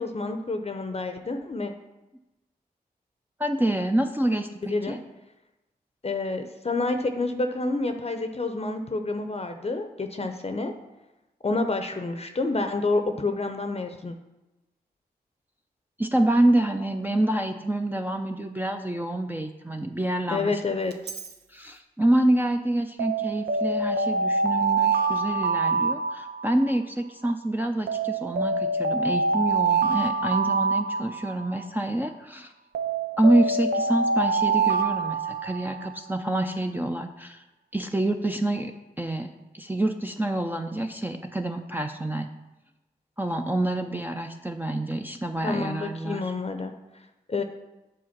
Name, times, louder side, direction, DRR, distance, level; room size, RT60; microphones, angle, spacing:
voice 1, 0.0-1.7 4.7-5.0 6.0-10.7 11.4-14.1 20.3-20.9 45.4-46.7 47.3-47.4, left 3 dB, 40° left, 6 dB, 0.7 m, -28 dB
voice 2, 3.4-5.0 16.0-20.6 21.5-32.5 33.2-37.4 37.7-42.3 43.2-46.3, right 1 dB, 10° right, 4 dB, 0.5 m, -27 dB
Alarm, 20.9-21.3 23.0-26.8 27.9-31.6 32.7-36.0, right 4 dB, 85° right, 0.6 m, -25 dB
7.7 x 3.8 x 5.8 m, 1.0 s
cardioid pair, 45°, 16 cm